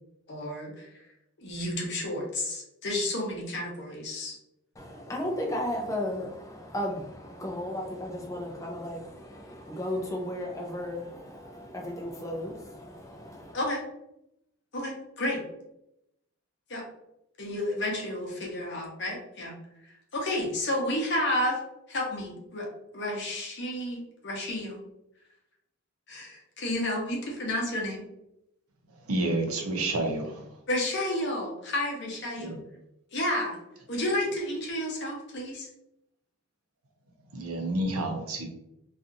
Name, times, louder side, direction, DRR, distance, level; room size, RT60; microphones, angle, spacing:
voice 1, 0.3-1.0 1.4-4.4 13.5-13.8 14.7-15.4 16.7-16.8 17.4-19.6 19.8-21.6 21.9-22.7 22.9-24.8 26.1-28.1 30.7-32.6 33.1-33.6 33.9-35.7, left 1 dB, 50° left, -1 dB, 0.7 m, -31 dB
voice 2, 4.8-13.6, left 1 dB, 15° left, 0 dB, 0.4 m, -35 dB
voice 3, 29.0-30.5 32.4-32.6 37.3-38.5, right 1 dB, 85° right, 2 dB, 0.6 m, -29 dB
2.7 x 2.4 x 2.4 m, 0.83 s
head